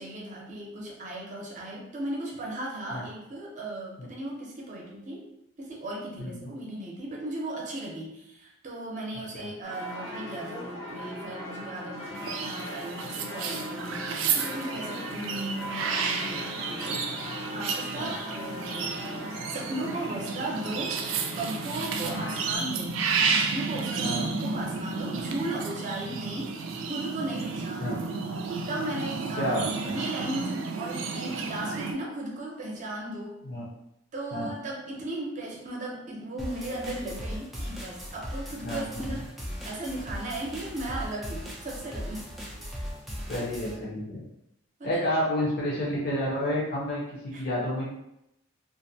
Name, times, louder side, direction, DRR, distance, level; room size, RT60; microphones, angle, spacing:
voice 1, 0.0-5.3 5.6-19.1 19.5-21.1 21.4-24.2 24.4-26.5 26.9-28.0 28.7-29.5 29.9-33.4 34.1-39.2 39.6-42.3 44.8-45.1 47.3-47.4, right 1 dB, 40° right, -2 dB, 0.6 m, -36 dB
voice 2, 6.2-6.5 9.3-9.5 18.0-18.1 22.0-22.3 24.0-24.3 27.8-27.9 29.4-29.9 33.4-33.6 34.3-34.5 38.6-39.1 43.3-44.2 44.8-47.8, equal, 50° left, -6 dB, 0.7 m, -30 dB
sound 1, 9.6-22.6, left 1 dB, 80° left, 1.0 m, -39 dB
sound 2, 12.2-31.9, right 5 dB, 75° right, 0.3 m, -32 dB
sound 3, 36.4-43.8, equal, ahead, 0.4 m, -38 dB
2.5 x 2.1 x 2.7 m, 0.83 s
head